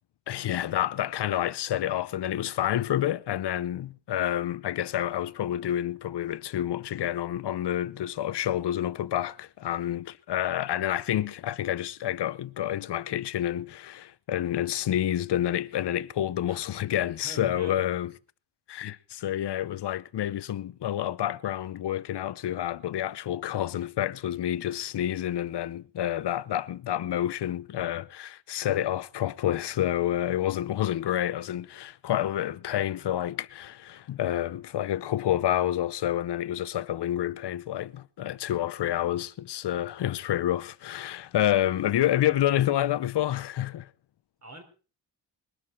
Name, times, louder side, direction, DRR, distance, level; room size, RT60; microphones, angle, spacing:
voice 1, 0.3-18.1 18.7-43.9, left 12 dB, 65° left, 0.7 m, -29 dB
voice 2, 17.2-17.8 44.4-44.6, right 2 dB, 40° right, 3.7 m, -43 dB
21.0 x 12.5 x 4.4 m
wide cardioid pair, 145°, 43 cm